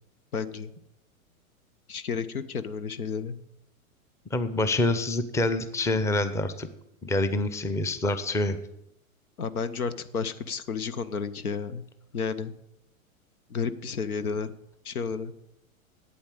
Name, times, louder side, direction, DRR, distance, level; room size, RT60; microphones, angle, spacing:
voice 1, 0.3-0.7 1.9-3.4 9.4-11.8 12.1-12.5 13.5-14.5 14.8-15.3, left 5 dB, 85° left, 14 dB, 0.9 m, -31 dB
voice 2, 4.3-6.7 7.0-8.6, left 2 dB, 5° left, 11 dB, 0.6 m, -26 dB
8.6 x 8.5 x 7.5 m, 0.82 s
hypercardioid pair, 105°, 42 cm